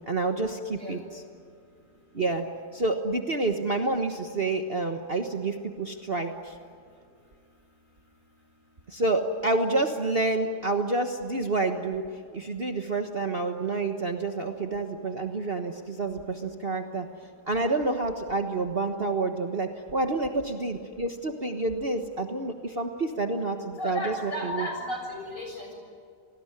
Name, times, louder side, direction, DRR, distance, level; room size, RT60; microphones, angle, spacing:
voice 1, 0.1-1.2 2.1-2.5 2.7-6.5 8.9-12.0 12.3-17.1 17.5-24.7, right 2 dB, 35° right, 4 dB, 1.5 m, -28 dB
voice 2, 23.8-25.7, equal, 50° left, 2 dB, 7.7 m, -34 dB
28.5 x 19.5 x 9.9 m, 2.2 s
omnidirectional pair, 1.8 m